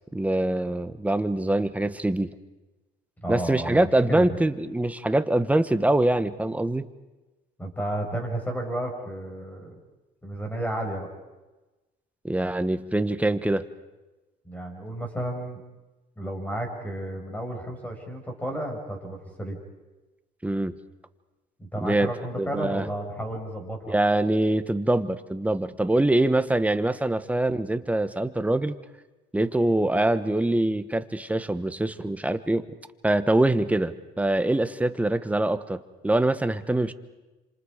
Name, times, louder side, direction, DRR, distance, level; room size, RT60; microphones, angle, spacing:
voice 1, 0.1-2.3 3.3-6.9 12.2-13.7 20.4-20.8 21.8-22.1 22.4-22.9 23.9-28.8 29.3-32.6 33.0-36.9, right 1 dB, 10° right, 11 dB, 1.1 m, -24 dB
voice 2, 3.2-4.3 7.6-9.7 10.2-11.1 14.4-15.6 16.2-19.6 21.6-23.9, right 1 dB, 10° left, 2 dB, 6.2 m, -32 dB
28.5 x 27.0 x 5.0 m, 1.1 s
cardioid pair, 110°, 17 cm